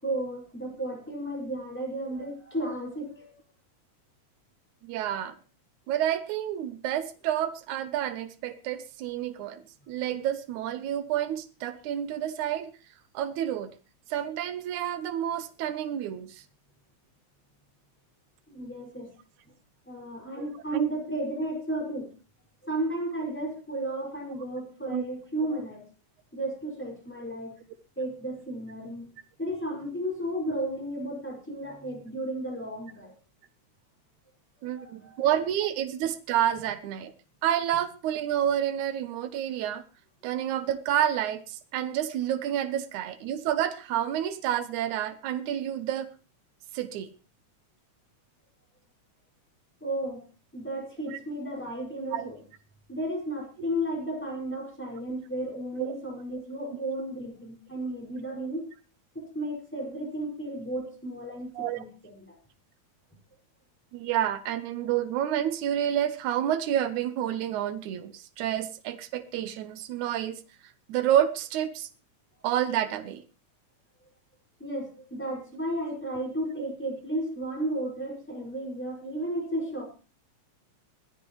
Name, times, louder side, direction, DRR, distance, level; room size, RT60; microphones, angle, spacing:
voice 1, 0.0-3.4 18.5-19.1 19.9-22.1 22.6-25.8 26.3-27.5 28.0-29.1 29.4-33.1 34.7-35.2 49.8-50.2 50.5-52.4 52.9-58.6 59.1-62.4 74.6-79.8, right 1 dB, 5° left, -1 dB, 5.6 m, -33 dB
voice 2, 4.8-5.4 5.9-12.7 13.1-13.7 14.1-16.4 20.4-20.5 20.7-20.9 24.9-25.0 25.5-25.6 34.6-37.1 37.4-39.8 40.2-46.1 46.7-47.1 52.1-52.3 55.8-55.9 61.6-61.8 63.9-70.4 70.9-71.9 72.4-73.2, right 11 dB, 85° right, 9 dB, 2.4 m, -29 dB
21.0 x 13.5 x 3.1 m, 0.34 s
omnidirectional pair, 3.3 m